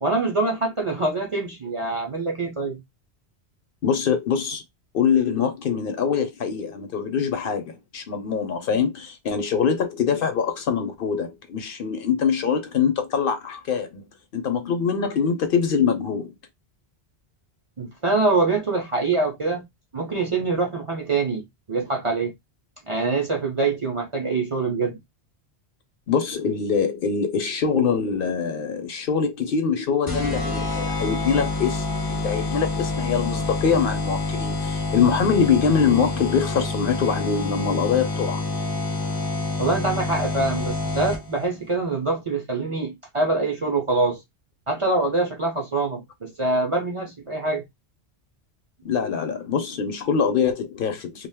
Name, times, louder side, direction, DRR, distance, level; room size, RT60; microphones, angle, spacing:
voice 1, 0.0-2.8 17.8-19.7 19.9-22.3 22.9-25.0 39.6-44.2 44.7-47.6, right 3 dB, 40° right, 0.5 m, -24 dB
voice 2, 3.8-4.6 4.9-14.0 14.3-16.3 26.1-38.5 48.8-51.3, left 6 dB, 65° left, 0.7 m, -24 dB
sound 1, 30.1-41.5, left 3 dB, 25° left, 0.5 m, -27 dB
2.4 x 2.2 x 3.4 m
omnidirectional pair, 1.1 m